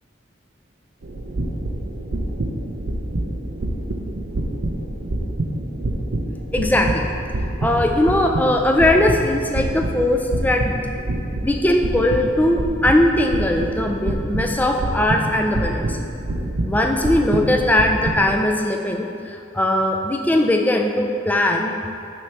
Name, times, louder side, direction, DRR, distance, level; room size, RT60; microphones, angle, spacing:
sound 1, 1.0-18.3, right 1 dB, 75° right, 0.6 m, -27 dB
voice 1, 6.5-7.1 7.6-10.7 11.4-16.0 16.7-21.7, left 1 dB, 10° left, 3 dB, 0.3 m, -19 dB
6.1 x 3.3 x 5.8 m, 2.4 s
head